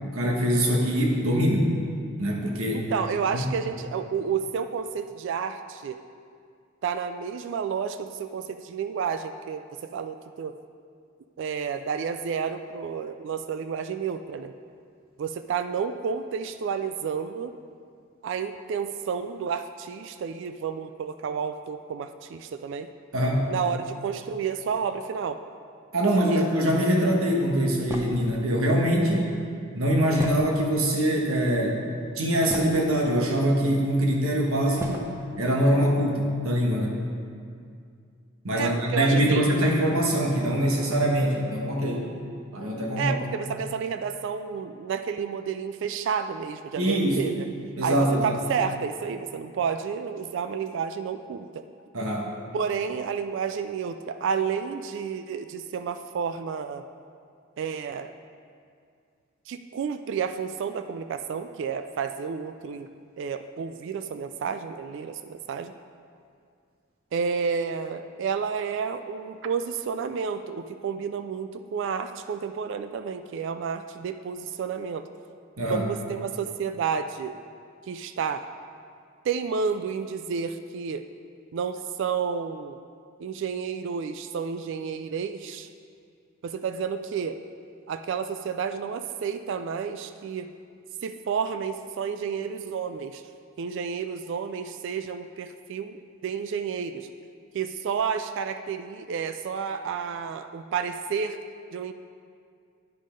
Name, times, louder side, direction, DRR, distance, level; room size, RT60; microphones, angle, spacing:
voice 1, 0.0-1.7 2.2-2.9 3.3-3.5 23.1-23.5 25.9-29.3 29.7-31.8 32.2-35.1 35.4-37.0 38.4-42.1 42.5-43.2 46.8-47.2 47.8-48.3 51.9-52.3 75.6-75.8, equal, 85° right, 0 dB, 1.3 m, -23 dB
voice 2, 2.7-6.0 6.8-10.5 11.4-14.5 15.2-17.5 18.2-22.9 23.5-25.4 26.0-26.5 38.5-39.4 43.0-47.5 47.8-51.6 52.5-56.8 57.6-58.1 59.5-62.9 63.2-65.7 67.1-75.1 75.7-77.4 77.9-78.4 79.2-81.0 81.5-82.8 83.2-85.7 86.4-87.4 87.9-90.5 91.0-93.2 93.6-96.0 96.2-97.1 97.5-101.4 101.7-101.9, right 6 dB, 60° right, 9 dB, 0.3 m, -30 dB
sound 1, 27.9-28.3 30.2-30.9 31.7-31.8 32.2-33.0 33.9-34.0 34.8-35.1, equal, 15° right, 0.6 m, -35 dB
9.4 x 5.4 x 5.1 m, 2.3 s
head